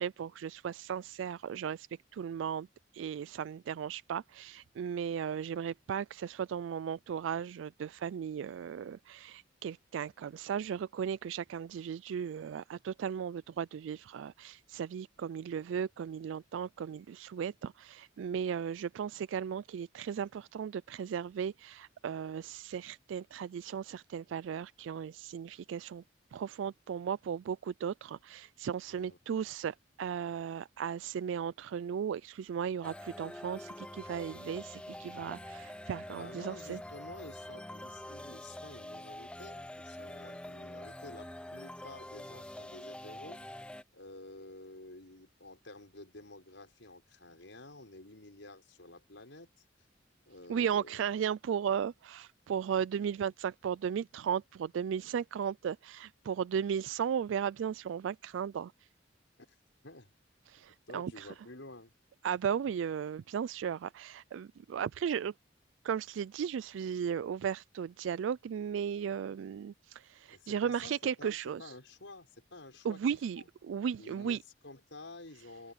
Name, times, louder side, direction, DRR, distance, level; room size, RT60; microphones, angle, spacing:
voice 1, 0.0-1.9 2.1-2.7 2.9-26.0 26.3-36.8 50.5-58.7 60.5-61.3 62.2-65.3 65.8-71.7 72.8-74.4, right 8 dB, 85° right, 0.3 m, -36 dB
voice 2, 28.9-29.2 36.1-43.6 43.9-49.5 50.3-51.0 59.8-60.1 60.5-61.9 70.3-73.5 74.0-75.7, left 2 dB, 80° left, 5.7 m, -51 dB
sound 1, 32.8-43.8, left 1 dB, 5° left, 0.6 m, -46 dB
open air
head